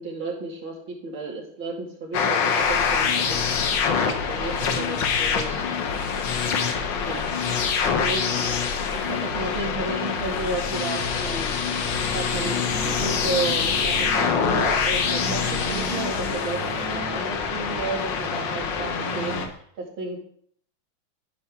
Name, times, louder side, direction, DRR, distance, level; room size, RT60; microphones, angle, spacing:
voice 1, 0.0-3.5 3.9-5.6 7.0-7.3 7.8-8.6 8.9-11.5 12.1-12.6 12.9-16.6 16.8-20.2, right 3 dB, 75° right, -2 dB, 2.9 m, -33 dB
sound 1, 2.1-19.5, left 6 dB, 65° left, 1.5 m, -25 dB
sound 2, 2.6-16.3, left 5 dB, 85° left, 2.6 m, -35 dB
Accelerating revving vroom, 10.8-19.5, right 2 dB, 15° right, 1.2 m, -37 dB
13.5 x 5.6 x 3.5 m, 0.62 s
omnidirectional pair, 2.2 m